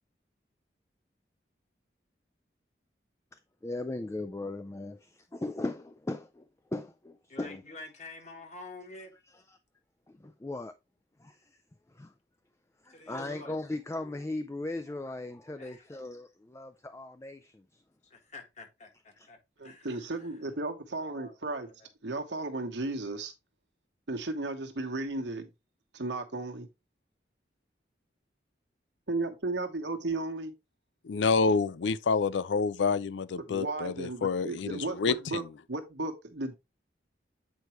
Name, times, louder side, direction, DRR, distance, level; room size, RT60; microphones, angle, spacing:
voice 1, 3.3-6.4 6.7-7.6 10.1-10.7 11.2-11.6 11.9-12.1 12.8-17.8 19.2-19.3, left 2 dB, 15° left, 0.3 m, -38 dB
voice 2, 7.3-9.1 12.9-13.6 15.5-15.9 18.0-19.4 19.6-20.3 21.0-21.4 21.6-21.9, left 2 dB, 40° left, 1.5 m, -48 dB
voice 3, 19.6-21.7 22.0-23.3 24.1-25.5 25.9-26.7 29.1-30.5 33.5-35.4 35.7-36.5, right 2 dB, 75° right, 1.3 m, -34 dB
voice 4, 31.0-35.5, left 4 dB, 85° left, 0.4 m, -28 dB
8.2 x 4.6 x 3.1 m
head